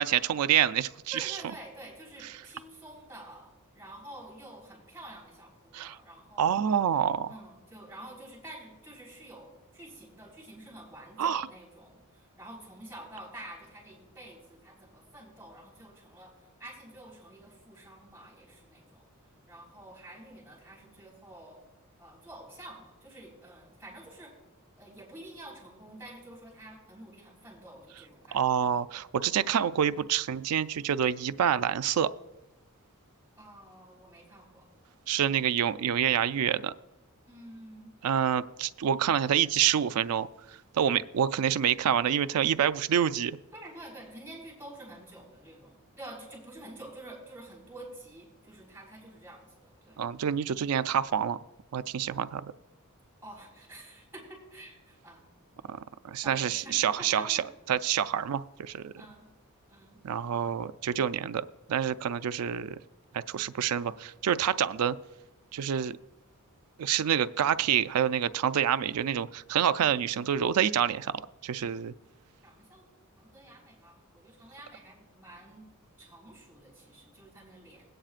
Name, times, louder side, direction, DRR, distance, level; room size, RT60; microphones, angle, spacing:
voice 1, 0.0-1.4 5.7-6.0 6.4-7.3 11.2-11.5 28.3-32.1 35.1-36.7 38.0-40.3 40.7-43.4 50.0-51.4 51.7-52.4 55.7-55.8 56.0-57.4 57.7-58.9 60.0-61.4 61.7-62.8 63.1-65.0 65.5-66.0 66.8-71.9, right 9 dB, 85° right, 13 dB, 0.4 m, -27 dB
voice 2, 1.1-6.6 7.3-19.0 19.5-21.6 22.0-24.3 24.8-28.7 33.4-34.7 35.2-35.5 37.3-37.9 43.5-50.0 53.2-55.3 56.2-57.5 59.0-59.3 59.7-60.0 60.3-60.6 72.4-72.9 73.2-75.7 76.0-77.8, right 1 dB, 10° right, -5 dB, 3.6 m, -48 dB
21.0 x 8.8 x 2.5 m, 1.0 s
head